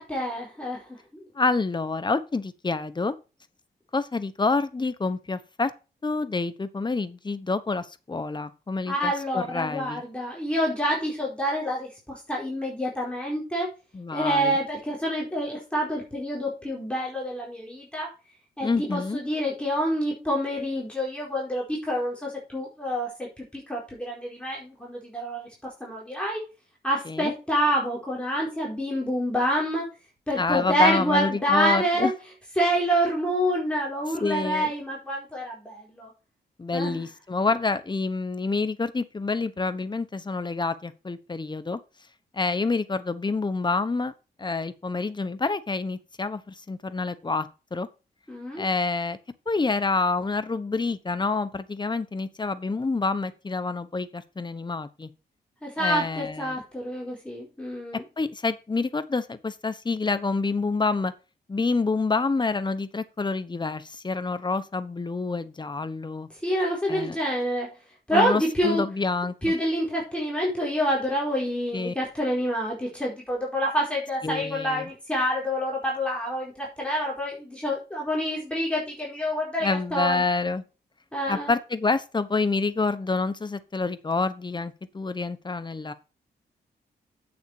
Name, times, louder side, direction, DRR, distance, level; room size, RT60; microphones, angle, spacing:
voice 1, 0.0-1.3 8.9-13.7 14.1-18.1 18.6-23.1 23.4-26.4 26.8-29.9 30.3-32.1 32.6-36.1 36.7-37.0 48.3-48.6 55.6-58.0 66.4-67.7 68.1-68.8 69.4-80.2 81.1-81.5, equal, 5° left, 4.4 m, -27 dB
voice 2, 1.4-3.2 3.9-5.7 6.0-10.0 13.9-14.6 18.6-19.2 27.1-27.3 30.4-32.1 34.2-34.7 36.6-41.8 42.3-44.1 44.4-47.9 48.6-49.2 49.5-55.1 55.8-56.6 58.2-61.1 61.5-66.3 66.9-67.2 68.1-69.3 71.7-71.9 74.2-74.9 79.6-80.6 81.3-85.9, left 3 dB, 25° left, 1.1 m, -27 dB
8.3 x 7.0 x 4.7 m
cardioid pair, 100°, 18 cm